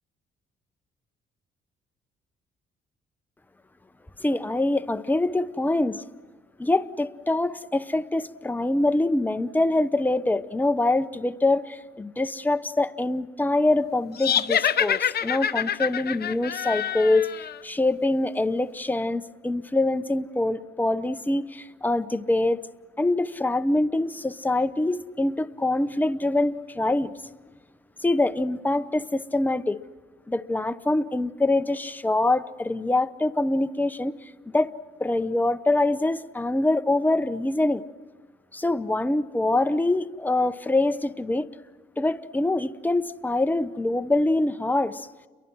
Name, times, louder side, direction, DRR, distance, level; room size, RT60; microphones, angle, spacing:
voice 1, 4.2-6.0 6.6-22.6 23.0-27.1 28.0-29.8 30.3-34.1 34.5-34.7 35.0-37.8 38.5-41.5 42.0-45.1, left 2 dB, 10° left, 11 dB, 0.8 m, -24 dB
sound 1, 14.2-17.6, left 9 dB, 55° left, 0.9 m, -26 dB
30.0 x 23.5 x 6.2 m, 1.4 s
cardioid pair, 90°, 20 cm